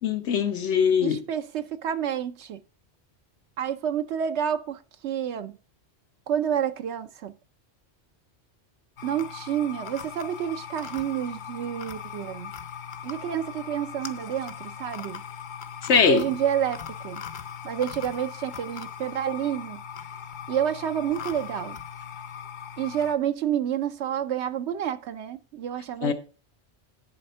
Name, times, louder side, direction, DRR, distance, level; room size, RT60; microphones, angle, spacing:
voice 1, 0.0-1.2 15.8-16.3 26.0-26.1, left 6 dB, 85° left, 1.3 m, -21 dB
voice 2, 1.0-2.6 3.6-5.5 6.3-7.3 9.0-12.5 13.0-15.2 16.1-17.2 17.6-19.8 20.5-21.8 22.8-26.1, right 9 dB, 80° right, 0.9 m, -29 dB
sound 1, 9.0-23.2, left 8 dB, 50° left, 0.7 m, -39 dB
10.5 x 4.2 x 5.5 m
omnidirectional pair, 1.1 m